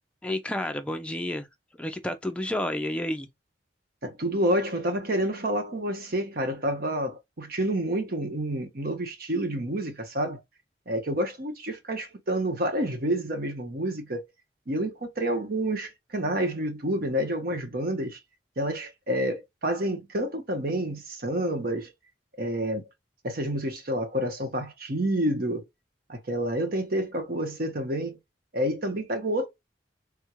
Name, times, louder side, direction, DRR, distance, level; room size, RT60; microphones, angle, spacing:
voice 1, 0.2-1.5 1.8-3.3, left 1 dB, 5° left, 0.5 m, -30 dB
voice 2, 4.0-10.4 10.9-14.2 14.7-18.2 18.6-21.9 22.4-22.8 23.2-25.6 26.1-28.2 28.5-29.5, right 1 dB, 55° right, 1.0 m, -29 dB
3.6 x 2.3 x 2.9 m
head